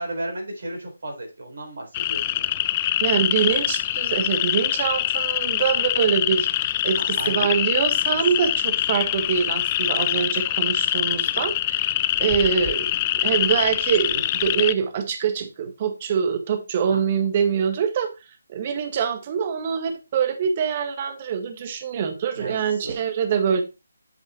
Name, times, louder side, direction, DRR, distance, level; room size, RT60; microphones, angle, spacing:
voice 1, 0.0-2.5 7.1-7.5 16.9-17.0 22.3-22.9, right 1 dB, 55° right, 1 dB, 4.2 m, -34 dB
sound 1, 1.9-14.7, left 14 dB, 20° left, 0.3 m, -24 dB
voice 2, 3.0-18.1 18.5-23.6, right 7 dB, 30° right, 7 dB, 1.6 m, -24 dB
7.8 x 5.6 x 4.4 m, 0.27 s
figure-of-eight pair, 150°, 0 cm